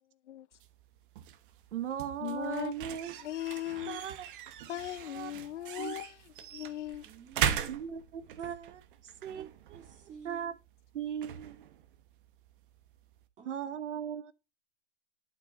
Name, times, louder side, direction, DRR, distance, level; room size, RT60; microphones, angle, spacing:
sound 1, 0.5-13.3, right 10 dB, 45° right, 1.0 m, -40 dB
voice 1, 1.7-3.2 3.9-4.3 4.6-6.1 7.7-9.8 10.2-10.5 10.9-11.7 13.4-14.3, right 9 dB, 85° right, 1.1 m, -39 dB
voice 2, 2.2-2.7 3.2-4.0 4.7-6.1 6.5-7.0, left 13 dB, 80° left, 0.7 m, -38 dB
voice 3, 7.0-7.9 9.0-10.5 13.4-13.8, right 7 dB, 20° right, 2.5 m, -52 dB
11.5 x 4.3 x 3.0 m
hypercardioid pair, 155°, 35 cm